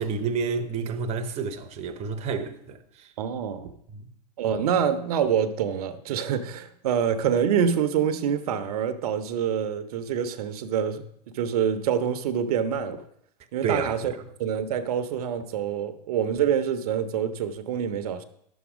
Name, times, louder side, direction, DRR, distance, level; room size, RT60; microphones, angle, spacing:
voice 1, 0.0-3.1 3.9-4.1 13.6-14.2, right 5 dB, 30° right, 0.9 m, -30 dB
voice 2, 3.2-3.7 4.4-11.0 11.3-13.1 13.5-18.2, right 8 dB, 60° right, 0.9 m, -26 dB
11.0 x 7.2 x 5.0 m
hypercardioid pair, 115°, 21 cm